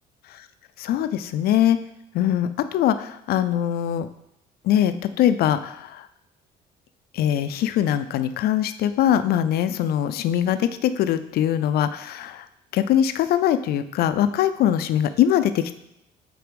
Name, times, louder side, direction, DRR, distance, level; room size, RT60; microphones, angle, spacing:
voice 1, 0.8-1.8 2.1-4.1 4.6-6.1 7.1-12.5 12.7-15.7, left 10 dB, 65° left, 11 dB, 0.4 m, -22 dB
4.6 x 4.1 x 5.1 m, 0.80 s
cardioid pair, 110°, 17 cm